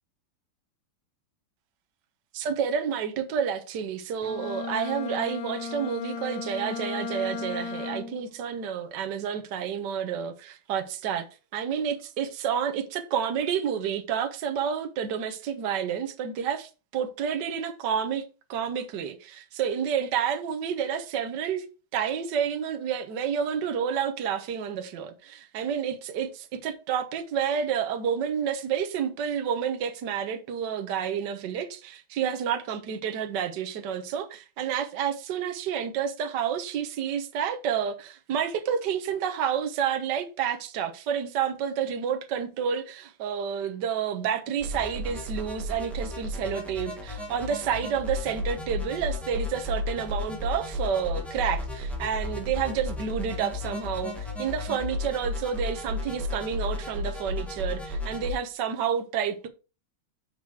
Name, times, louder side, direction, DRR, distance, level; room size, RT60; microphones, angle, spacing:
voice 1, 2.3-11.2 11.5-21.7 21.9-59.5, right 8 dB, 60° right, 1.5 m, -29 dB
Bowed string instrument, 4.2-8.3, left 5 dB, 75° left, 1.9 m, -35 dB
sound 1, 44.6-58.3, left 2 dB, ahead, 2.0 m, -33 dB
6.9 x 4.9 x 4.7 m
omnidirectional pair, 2.3 m